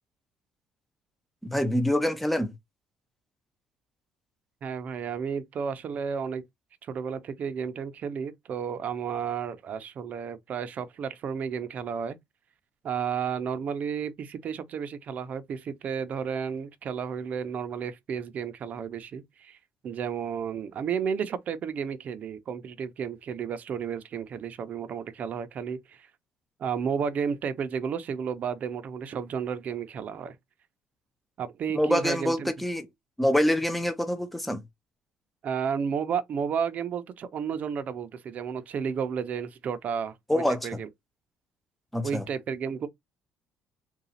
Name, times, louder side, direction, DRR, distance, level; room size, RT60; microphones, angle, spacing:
voice 1, 1.4-2.5 31.7-32.9 33.2-34.6 40.3-40.8 41.9-42.2, left 1 dB, 5° left, 0.5 m, -26 dB
voice 2, 4.6-6.4 6.8-12.2 12.8-19.6 19.8-26.1 26.6-30.4 31.4-32.5 35.4-40.9 42.0-42.9, right 7 dB, 45° right, 0.6 m, -32 dB
3.9 x 2.3 x 4.0 m
cardioid pair, 145°, 4 cm